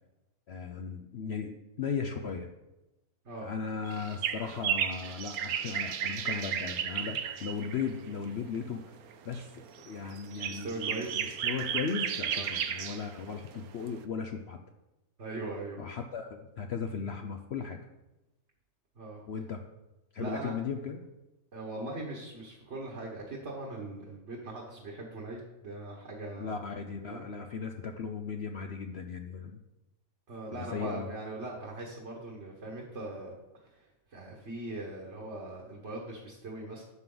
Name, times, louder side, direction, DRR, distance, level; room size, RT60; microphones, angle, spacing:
voice 1, 0.5-2.5 3.4-9.0 9.3-14.6 15.8-17.8 19.3-19.6 20.1-21.0 26.4-29.6 30.5-31.1, left 6 dB, 60° left, 5 dB, 0.7 m, -37 dB
sound 1, 3.9-8.0 9.1-9.4 9.8-13.2 13.5-13.6 13.9-14.0, right 8 dB, 75° right, 1.2 m, -33 dB
voice 2, 10.3-11.3 12.3-12.5 15.2-15.8 19.0-19.2 20.2-20.5 21.5-26.6 27.1-27.3 30.3-33.3 33.7-36.8, right 2 dB, 50° right, -1 dB, 1.7 m, -40 dB
11.5 x 7.4 x 3.9 m, 1.0 s
omnidirectional pair, 1.6 m